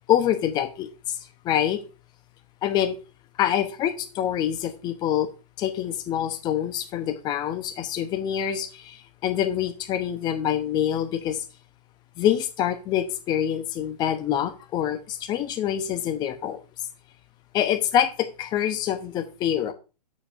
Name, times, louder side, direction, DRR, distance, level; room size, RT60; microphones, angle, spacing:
voice 1, 0.1-1.2 1.4-1.8 2.6-3.0 3.4-5.3 5.6-11.4 12.2-16.6 17.5-19.7, left 10 dB, 20° left, 10 dB, 0.8 m, -26 dB
8.4 x 7.3 x 2.5 m, 0.31 s
figure-of-eight pair, 115°, 21 cm